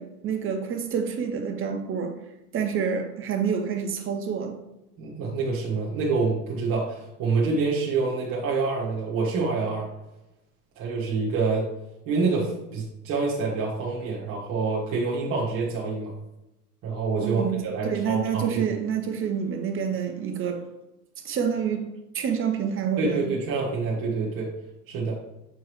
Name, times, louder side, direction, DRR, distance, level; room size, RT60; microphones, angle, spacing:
voice 1, 0.0-2.1 2.5-4.6 17.2-17.6 17.8-20.6 21.2-21.9 22.1-23.3, right 7 dB, 25° right, 0.9 m, -27 dB
voice 2, 5.0-9.9 10.8-11.7 12.1-16.1 16.8-18.6 23.0-24.5 24.9-25.2, right 4 dB, 45° right, 1.6 m, -27 dB
7.5 x 4.6 x 3.1 m
figure-of-eight pair, 80°, 47 cm